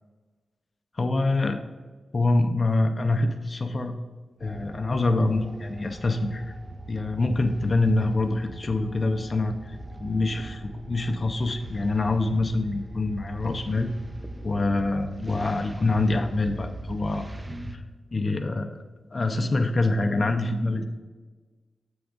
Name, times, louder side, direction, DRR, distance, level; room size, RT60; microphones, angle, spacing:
voice 1, 0.9-1.6 2.1-4.0 4.4-6.5 6.9-10.6 10.9-13.9 14.4-17.3 17.7-17.8 18.1-18.8 19.1-20.8, left 2 dB, 50° left, 6 dB, 0.5 m, -25 dB
sound 1, 4.4-17.8, right 1 dB, 20° right, 0.6 m, -40 dB
7.0 x 3.5 x 5.0 m, 1.3 s
cardioid pair, 50°, 0 cm